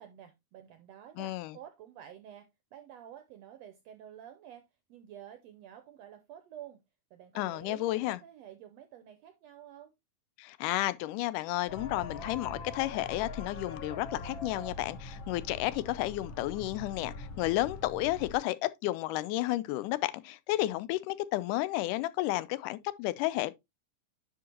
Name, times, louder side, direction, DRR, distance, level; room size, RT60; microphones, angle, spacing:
voice 1, 0.0-6.8 7.1-9.9, right 10 dB, 75° right, 1.5 m, -50 dB
voice 2, 1.2-1.6 7.4-8.2 10.4-23.5, left 17 dB, 85° left, 2.1 m, -32 dB
sound 1, 11.7-18.4, left 3 dB, 60° left, 1.4 m, -43 dB
10.5 x 5.1 x 2.9 m
omnidirectional pair, 3.7 m